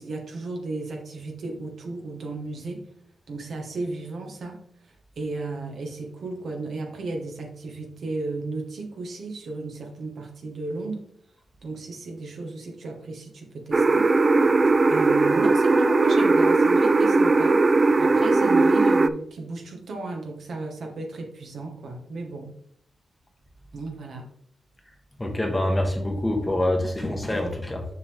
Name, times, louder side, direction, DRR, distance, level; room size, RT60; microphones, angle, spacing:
voice 1, 0.0-2.8 3.3-4.6 5.2-11.0 11.6-14.1 14.9-17.6 18.0-22.5 23.7-24.2, right 3 dB, 70° right, 2 dB, 1.5 m, -34 dB
sound 1, 13.7-19.1, right 3 dB, 35° right, 0.3 m, -19 dB
voice 2, 25.2-27.9, left 1 dB, 15° left, 4 dB, 1.3 m, -25 dB
6.5 x 5.3 x 3.5 m, 0.67 s
cardioid pair, 80°, 0 cm